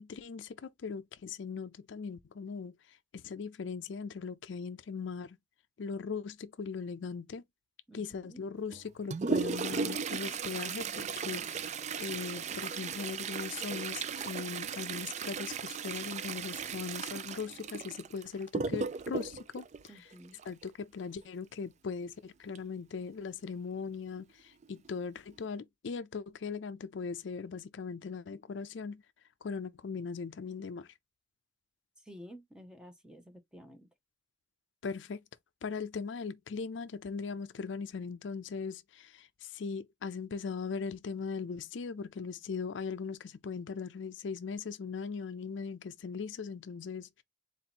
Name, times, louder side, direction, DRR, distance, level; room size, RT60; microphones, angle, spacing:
voice 1, 0.0-2.8 3.1-5.4 5.8-7.4 7.9-19.9 20.5-29.0 29.4-30.9 34.8-35.2 35.6-47.2, left 5 dB, 75° left, 0.4 m, -39 dB
voice 2, 7.9-8.5 19.9-20.4 32.1-33.9, equal, 5° right, 0.8 m, -52 dB
Toilet flush, 8.7-20.7 22.5-22.6 23.0-23.1 23.9-24.0 24.6-24.9 25.3-25.5, right 5 dB, 35° right, 0.4 m, -36 dB
4.0 x 2.9 x 4.2 m
head